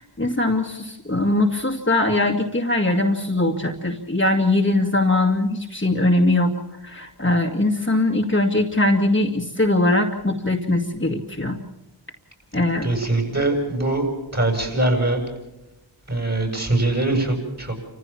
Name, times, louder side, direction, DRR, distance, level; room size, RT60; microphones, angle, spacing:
voice 1, 0.0-6.5 6.8-11.6 12.5-12.9, left 2 dB, 25° left, 2 dB, 2.2 m, -21 dB
voice 2, 12.8-14.1 14.3-15.2 16.1-17.8, right 2 dB, 35° right, 3 dB, 7.9 m, -22 dB
29.0 x 15.5 x 7.3 m, 0.93 s
cardioid pair, 50°, 45 cm